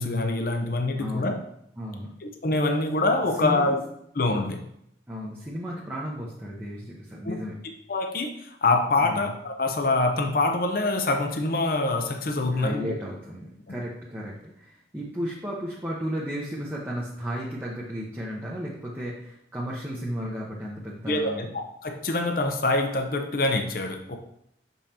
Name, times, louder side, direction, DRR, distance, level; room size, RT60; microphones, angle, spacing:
voice 1, 0.0-1.3 2.2-3.8 4.1-4.7 7.2-7.3 7.9-13.0 13.7-13.8 21.1-24.2, left 2 dB, 55° left, 4 dB, 0.7 m, -25 dB
voice 2, 0.9-1.3 1.8-2.2 3.4-3.6 5.1-7.6 9.0-9.3 12.4-21.4, equal, 10° right, -5 dB, 0.8 m, -34 dB
6.3 x 5.4 x 2.8 m, 0.74 s
head